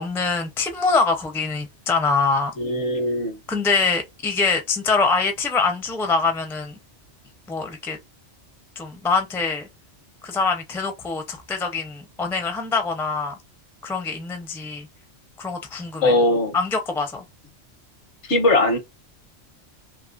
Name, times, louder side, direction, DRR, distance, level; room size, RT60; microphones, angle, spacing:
voice 1, 0.0-2.5 3.5-6.7 7.5-8.0 8.8-9.7 10.2-13.3 13.8-14.9 15.4-16.1 16.5-17.2, left 4 dB, 5° left, 0.4 m, -24 dB
voice 2, 2.6-3.4 16.0-16.5 18.3-18.8, left 2 dB, 80° left, 1.3 m, -20 dB
2.9 x 2.9 x 2.5 m
omnidirectional pair, 1.2 m